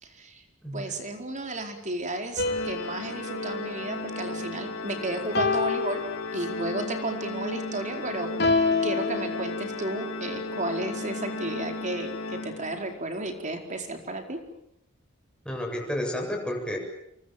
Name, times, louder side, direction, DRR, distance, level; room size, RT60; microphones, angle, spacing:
voice 1, 0.0-0.4 0.7-6.0 6.3-14.4, right 2 dB, 35° right, 5 dB, 4.6 m, -33 dB
Organ, 2.4-13.1, left 2 dB, 80° left, 2.7 m, -35 dB
sound 1, 2.4-4.8 5.4-6.8 8.4-10.1, left 4 dB, 55° left, 2.9 m, -29 dB
voice 2, 15.4-16.8, left 1 dB, 5° left, 0 dB, 7.6 m, -31 dB
28.5 x 24.0 x 7.6 m, 0.78 s
head